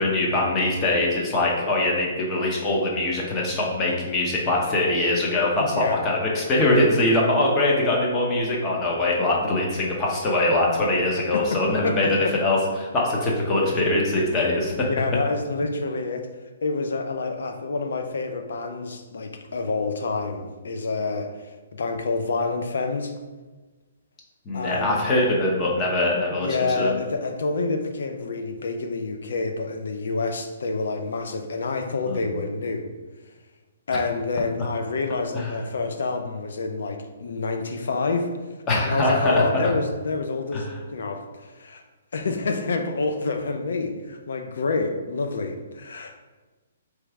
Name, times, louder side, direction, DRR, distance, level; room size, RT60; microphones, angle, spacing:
voice 1, 0.0-14.9 24.5-27.0 32.1-32.3 35.3-35.5 38.7-39.4 40.5-40.6, left 2 dB, 20° left, -2 dB, 0.9 m, -22 dB
voice 2, 5.6-6.0 11.3-12.3 14.9-16.3 16.6-23.1 24.5-25.0 26.4-32.9 33.9-38.3 38.8-41.8 42.1-46.2, left 3 dB, 75° left, 5 dB, 0.5 m, -28 dB
3.4 x 3.1 x 4.7 m, 1.2 s
hypercardioid pair, 160°, 0 cm